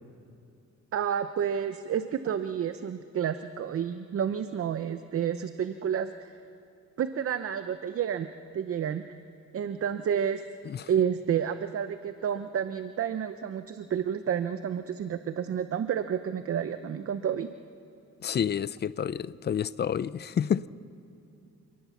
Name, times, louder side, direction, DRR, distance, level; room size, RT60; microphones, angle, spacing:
voice 1, 0.9-6.3 7.0-8.3 8.5-9.0 9.5-10.4 10.9-17.5, right 8 dB, 50° right, 0.7 m, -30 dB
voice 2, 18.2-20.7, left 8 dB, 35° left, 0.5 m, -29 dB
27.5 x 19.0 x 7.1 m
cardioid pair, 120°, 30 cm